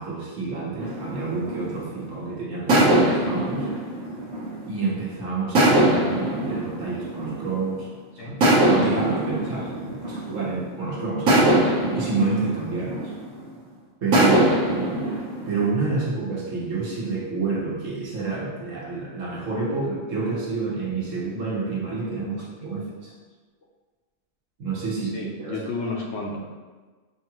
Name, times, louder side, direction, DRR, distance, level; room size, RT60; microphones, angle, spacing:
voice 1, 0.0-3.7 4.7-7.9 8.2-8.3 8.7-11.5 11.9-13.1 14.0-14.9 15.5-23.1 24.6-25.6, right 4 dB, 70° right, -5 dB, 1.3 m, -29 dB
sound 1, 0.8-2.1 2.7-5.0 5.6-7.7 8.4-10.7 11.3-13.5 14.1-15.7, right 1 dB, 90° right, 1.3 m, -22 dB
voice 2, 22.7-23.1 25.1-26.4, left 3 dB, 65° left, -1 dB, 0.8 m, -33 dB
5.1 x 2.4 x 2.9 m, 1.3 s
omnidirectional pair, 1.4 m